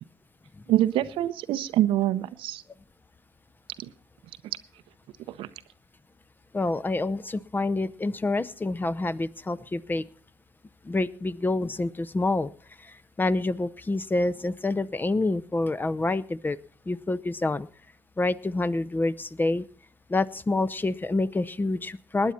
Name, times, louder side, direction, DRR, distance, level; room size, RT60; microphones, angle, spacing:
voice 1, 0.7-2.6 5.4-5.5, right 13 dB, 65° right, 13 dB, 0.7 m, -25 dB
voice 2, 6.5-10.0 10.8-12.5 12.8-16.6 16.9-17.7 18.2-19.6 20.1-22.3, left 2 dB, 20° left, 14 dB, 0.7 m, -27 dB
20.0 x 9.4 x 4.3 m, 0.40 s
hypercardioid pair, 50°, 9 cm